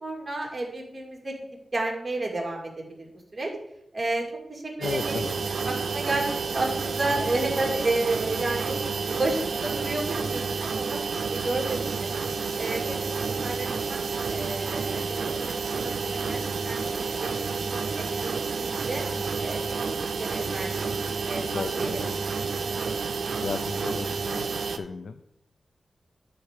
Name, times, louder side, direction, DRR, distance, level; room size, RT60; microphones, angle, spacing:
voice 1, 0.0-1.3 1.7-3.5 3.9-5.3 5.7-8.8 9.0-12.1 12.6-14.0 14.3-16.4 16.6-17.4 18.0-19.0 19.4-21.9, right 2 dB, 25° right, -1 dB, 2.2 m, -32 dB
voice 2, 4.8-5.4 21.3-22.1 23.4-25.2, left 4 dB, 75° left, 9 dB, 0.4 m, -35 dB
sound 1, 4.8-24.8, right 5 dB, 70° right, 0.6 m, -30 dB
11.5 x 4.6 x 5.0 m, 0.82 s
wide cardioid pair, 135°, 0 cm